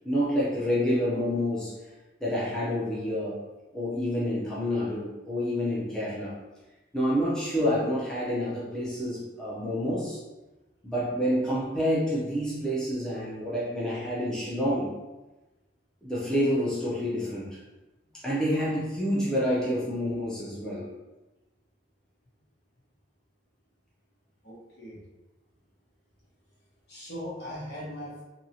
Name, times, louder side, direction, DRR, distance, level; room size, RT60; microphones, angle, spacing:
voice 1, 0.0-1.7 2.2-3.4 3.7-6.3 6.9-10.2 10.8-14.9 16.0-17.6 18.2-20.9, equal, 5° left, -9 dB, 0.6 m, -28 dB
voice 2, 24.4-25.0 26.9-28.2, equal, 60° left, -6 dB, 1.1 m, -39 dB
2.8 x 2.7 x 2.7 m, 1.1 s
head